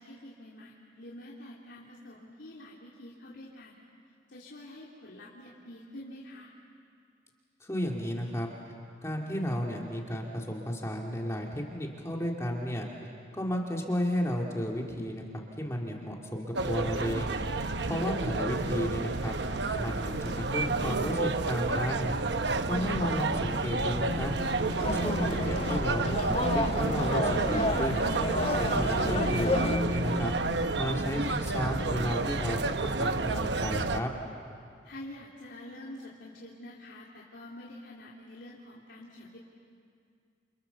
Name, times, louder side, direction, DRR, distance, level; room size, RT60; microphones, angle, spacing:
voice 1, 0.0-3.8 4.3-6.5 17.8-18.0 34.8-39.4, left 1 dB, 80° left, -5 dB, 3.0 m, -47 dB
voice 2, 7.6-8.5 9.0-12.9 13.3-17.4 17.8-19.3 19.8-22.1 22.7-24.3 24.8-28.1 28.6-30.3 30.7-34.1, equal, 15° left, 0 dB, 2.4 m, -33 dB
sound 1, 16.5-34.0, right 3 dB, 75° right, 1.0 m, -30 dB
sound 2, 23.9-30.5, left 1 dB, 30° right, 3.3 m, -36 dB
sound 3, 24.8-29.8, left 2 dB, 35° left, 1.2 m, -32 dB
29.5 x 28.5 x 7.0 m, 2.3 s
head